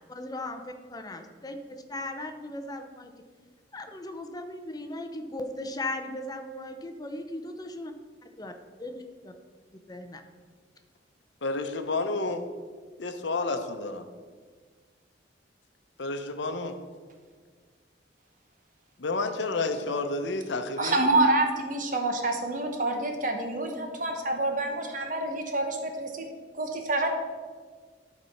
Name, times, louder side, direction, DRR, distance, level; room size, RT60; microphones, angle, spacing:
voice 1, 0.1-3.1 3.7-7.9 8.4-8.5 8.8-9.3 9.9-10.2, left 1 dB, 20° left, 6 dB, 0.6 m, -37 dB
voice 2, 11.4-12.4 13.0-14.1 16.0-16.8 19.0-21.0, left 3 dB, 75° left, 7 dB, 0.8 m, -30 dB
voice 3, 20.8-26.3 26.6-27.1, right 2 dB, 45° right, 4 dB, 1.1 m, -27 dB
11.5 x 4.2 x 5.7 m, 1.5 s
head